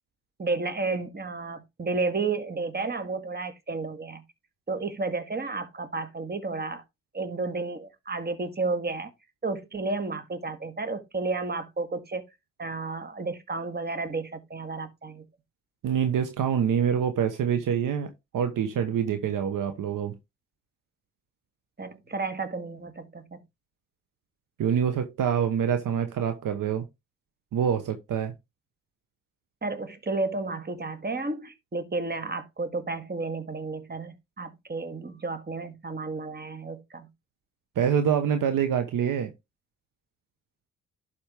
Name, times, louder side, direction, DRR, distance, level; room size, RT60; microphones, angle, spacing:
voice 1, 0.4-4.2 4.7-6.8 7.1-9.1 9.4-12.2 12.6-15.2 21.8-23.4 29.6-37.1, right 3 dB, 30° right, 1.7 m, -32 dB
voice 2, 15.8-20.1 24.6-26.8 27.5-28.3 37.8-39.3, right 8 dB, 65° right, 1.1 m, -26 dB
11.5 x 4.4 x 3.5 m
hypercardioid pair, 50°, 35 cm